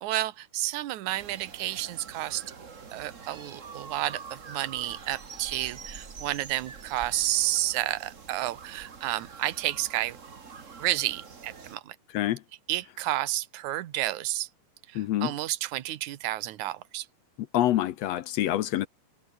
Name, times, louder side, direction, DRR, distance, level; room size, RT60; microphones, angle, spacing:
voice 1, 0.0-2.4 2.9-10.2 10.8-12.0 12.7-14.5 14.9-17.1, right 15 dB, 75° right, 2.5 m, -31 dB
sound 1, 1.1-11.8, right 5 dB, 30° right, 1.5 m, -45 dB
voice 2, 14.9-15.3 17.5-18.9, left 13 dB, 70° left, 1.7 m, -26 dB
omnidirectional pair, 3.6 m